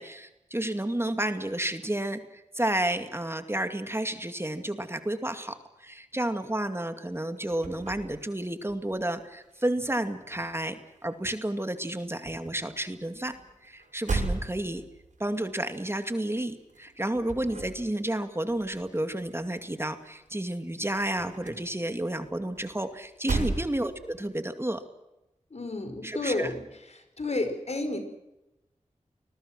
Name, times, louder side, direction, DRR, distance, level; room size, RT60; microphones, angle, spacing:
voice 1, 0.0-10.8 11.0-13.3 13.6-14.8 15.2-24.8 26.0-26.5, right 1 dB, 20° right, 8 dB, 2.3 m, -31 dB
sound 1, 7.1-9.1 9.4-11.3 11.6-20.3 20.6-24.3, right 3 dB, 90° right, 6.2 m, -37 dB
voice 2, 25.5-26.6 27.2-28.0, left 2 dB, 60° left, 7 dB, 5.3 m, -31 dB
30.0 x 21.0 x 6.2 m, 0.94 s
cardioid pair, 45°, 12 cm